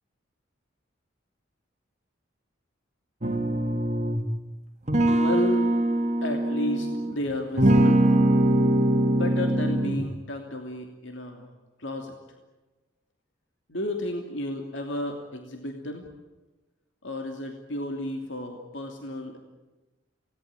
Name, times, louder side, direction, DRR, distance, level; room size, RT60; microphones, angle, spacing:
sound 1, 3.2-4.3 4.9-7.1 7.6-10.2, right 1 dB, 35° right, 2.1 m, -22 dB
voice 1, 5.1-5.7 6.2-8.0 9.1-11.5 11.8-12.2 13.7-16.1 17.0-19.4, left 1 dB, 65° left, 3 dB, 2.8 m, -32 dB
28.5 x 19.0 x 8.8 m, 1.2 s
head